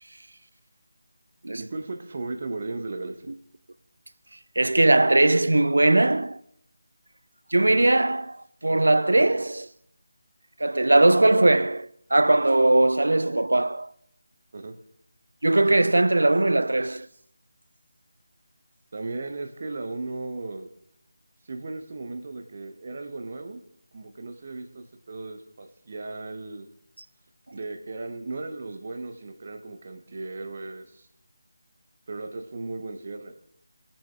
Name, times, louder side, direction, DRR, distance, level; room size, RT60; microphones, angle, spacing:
voice 1, 1.6-3.3 14.5-14.7 18.9-20.7 21.4-23.6 23.9-26.7 27.5-31.1 32.1-33.3, right 3 dB, 40° right, 0.9 m, -36 dB
voice 2, 4.6-6.4 7.5-9.7 10.6-13.9 15.4-17.1, right 2 dB, 65° right, 0.4 m, -20 dB
19.5 x 7.2 x 2.4 m
figure-of-eight pair, 160°, 0 cm